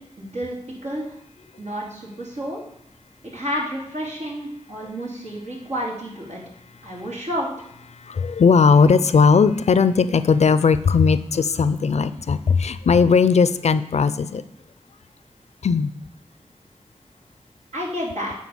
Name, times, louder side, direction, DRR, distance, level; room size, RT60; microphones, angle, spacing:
voice 1, 0.2-0.6 0.8-1.2 1.6-2.6 3.2-6.4 6.8-7.5 17.7-18.3, equal, 80° right, -4 dB, 2.9 m, -30 dB
voice 2, 8.1-14.4 15.6-15.9, left 5 dB, 75° left, 14 dB, 0.5 m, -17 dB
8.6 x 4.0 x 6.9 m, 0.78 s
cardioid pair, 45°, 11 cm